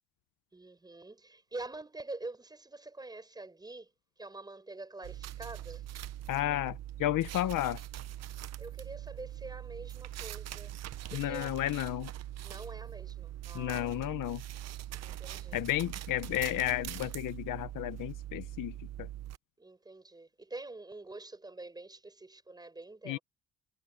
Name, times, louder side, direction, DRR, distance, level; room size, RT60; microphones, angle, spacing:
voice 1, 0.5-3.9 4.2-6.0 6.5-6.6 8.6-11.5 12.4-13.9 15.0-15.6 19.6-23.2, right 2 dB, 10° right, 6.7 m, -46 dB
sound 1, 5.0-19.4, right 13 dB, 50° right, 0.7 m, -42 dB
voice 2, 6.3-7.8 11.1-12.1 13.5-14.4 15.5-19.1 23.1-23.2, left 14 dB, 70° left, 0.8 m, -32 dB
cardioid pair, 165°, 34 cm